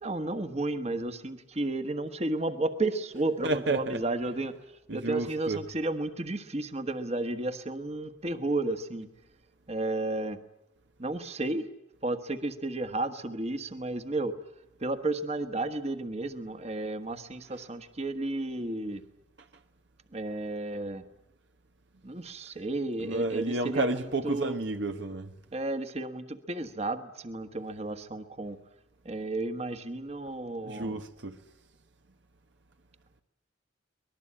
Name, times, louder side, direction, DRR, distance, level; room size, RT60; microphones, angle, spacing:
voice 1, 0.0-4.6 4.9-9.1 9.7-10.4 11.0-11.7 12.0-14.3 14.8-19.0 20.1-21.0 22.0-24.6 25.5-28.6 29.0-31.0, right 2 dB, 35° right, 1.4 m, -32 dB
voice 2, 3.4-4.0 4.9-5.6 23.0-25.3 30.6-31.4, right 2 dB, 65° right, 1.2 m, -31 dB
24.0 x 20.0 x 8.7 m
head